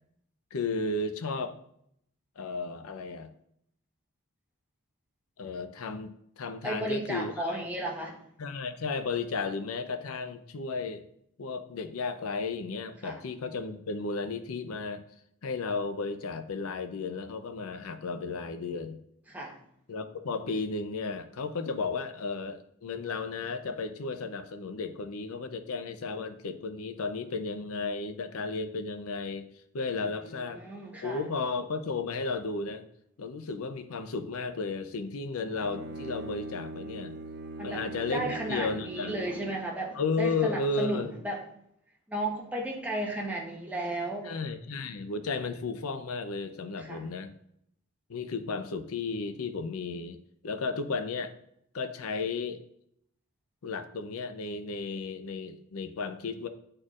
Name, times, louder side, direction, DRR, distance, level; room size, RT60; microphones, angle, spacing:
voice 1, 0.5-1.6 2.4-3.3 5.4-7.6 8.4-11.0 11.4-15.0 15.4-19.0 19.9-29.5 29.7-30.6 31.0-32.8 33.2-37.1 37.6-39.2 39.9-41.1 44.2-47.3 48.1-50.2 50.4-51.3 51.7-52.6 53.6-56.5, left 4 dB, 85° left, 9 dB, 0.6 m, -34 dB
voice 2, 6.6-8.2 13.0-13.2 19.3-19.6 30.0-31.2 37.6-37.8 38.1-41.4 42.1-44.3 46.8-47.0, right 1 dB, 5° right, -2 dB, 1.0 m, -34 dB
Bowed string instrument, 35.5-39.7, right 1 dB, 50° right, 0.7 m, -41 dB
9.6 x 4.3 x 2.4 m, 0.72 s
head